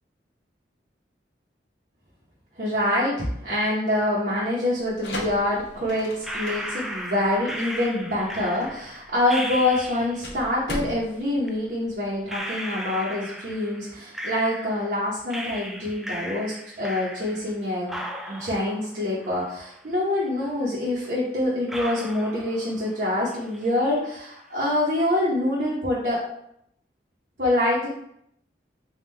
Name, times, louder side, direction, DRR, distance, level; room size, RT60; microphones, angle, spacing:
voice 1, 2.6-18.0 18.3-26.2 27.4-27.9, left 1 dB, 55° right, -6 dB, 0.9 m, -25 dB
sound 1, 4.8-12.4, left 1 dB, 70° left, 0.7 m, -38 dB
sound 2, 6.2-10.4 11.5-11.6 12.3-15.0 15.3-17.6 17.9-20.0 20.3-20.4 21.0-21.1 21.7-23.0 23.3-23.8, equal, ahead, 0.3 m, -36 dB
3.6 x 2.4 x 4.3 m, 0.74 s
head